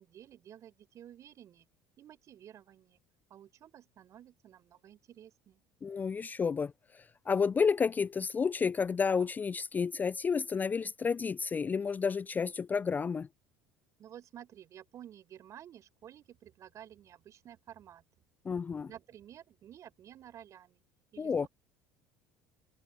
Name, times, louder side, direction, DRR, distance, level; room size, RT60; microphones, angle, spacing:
voice 1, 0.0-1.6 2.0-3.0 3.3-5.6 14.0-18.0 18.9-20.8 21.1-21.5, right 10 dB, 50° right, 5.7 m, -52 dB
voice 2, 5.8-13.3 18.5-18.9 21.2-21.5, left 5 dB, 25° left, 0.3 m, -31 dB
hypercardioid pair, 70°, 7 cm